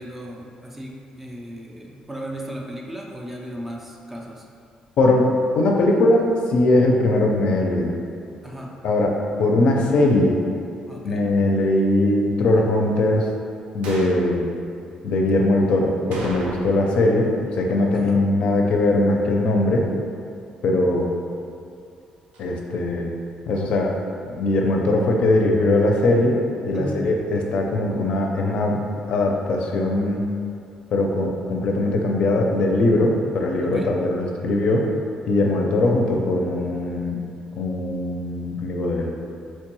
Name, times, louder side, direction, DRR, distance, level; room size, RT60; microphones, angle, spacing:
voice 1, 0.0-4.5 8.4-8.7 10.9-11.2 17.9-18.2 26.7-27.1 33.6-33.9, right 1 dB, 10° right, -1 dB, 0.3 m, -35 dB
voice 2, 5.0-5.3 5.5-6.2 6.5-7.9 8.8-10.4 11.0-13.3 13.7-14.5 15.0-19.9 20.6-21.1 22.4-23.1 23.5-23.9 24.3-26.4 26.6-28.8 29.1-30.3 30.9-34.9 35.3-37.2 37.5-39.1, left 2 dB, 60° left, 1 dB, 0.4 m, -20 dB
sound 1, 13.8-14.3 16.1-17.0 17.2-17.3 22.3-22.5, right 1 dB, 90° right, 0.5 m, -36 dB
4.3 x 2.2 x 3.0 m, 2.5 s
cardioid pair, 150°, 2 cm